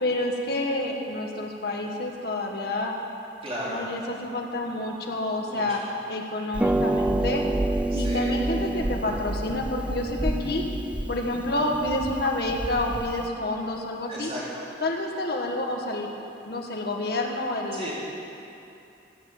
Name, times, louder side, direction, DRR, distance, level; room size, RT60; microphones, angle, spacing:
voice 1, 0.0-2.9 3.7-5.8 6.1-7.4 7.9-10.7 11.1-14.3 14.8-16.1 16.4-17.9, left 2 dB, 60° left, 1 dB, 1.4 m, -28 dB
voice 2, 3.4-3.9 5.5-5.9 7.9-8.3 14.1-14.7 17.7-17.9, equal, 35° right, -7 dB, 3.9 m, -35 dB
Harp, 6.5-13.3, right 1 dB, 5° right, 0.3 m, -28 dB
16.5 x 6.9 x 7.6 m, 2.7 s
head